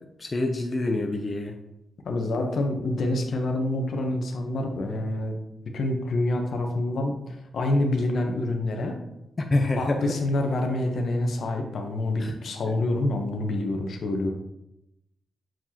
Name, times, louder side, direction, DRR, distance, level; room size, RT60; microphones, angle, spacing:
voice 1, 0.2-1.6 9.5-10.0 12.2-12.3, left 2 dB, 40° left, 4 dB, 0.7 m, -26 dB
voice 2, 2.0-5.4 5.7-9.0 9.8-14.3, left 2 dB, 65° left, 3 dB, 1.0 m, -27 dB
7.5 x 4.5 x 2.9 m, 0.87 s
hypercardioid pair, 40°, 0 cm